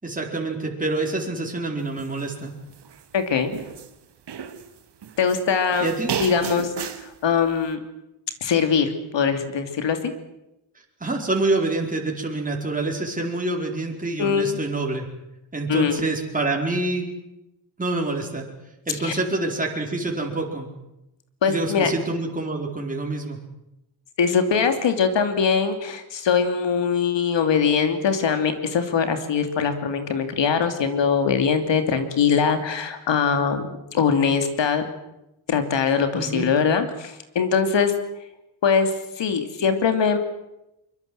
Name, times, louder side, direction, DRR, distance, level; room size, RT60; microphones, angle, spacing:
voice 1, 0.0-2.5 5.8-6.1 11.0-15.1 15.5-17.1 17.8-18.4 18.9-20.7 21.5-23.4 36.1-36.5, right 2 dB, 15° right, 0 dB, 4.6 m, -26 dB
sound 1, 2.0-2.2 2.7-3.9 4.3-5.4 5.7-7.1, right 8 dB, 55° right, 2.1 m, -33 dB
voice 2, 3.1-3.5 5.2-5.9 6.2-7.8 8.4-10.1 14.2-14.6 15.7-16.0 19.0-19.2 21.4-21.9 24.2-34.8 35.5-37.9 38.6-40.2, left 6 dB, 60° left, 8 dB, 2.9 m, -22 dB
24.0 x 22.5 x 7.8 m, 0.91 s
cardioid pair, 95°, 50 cm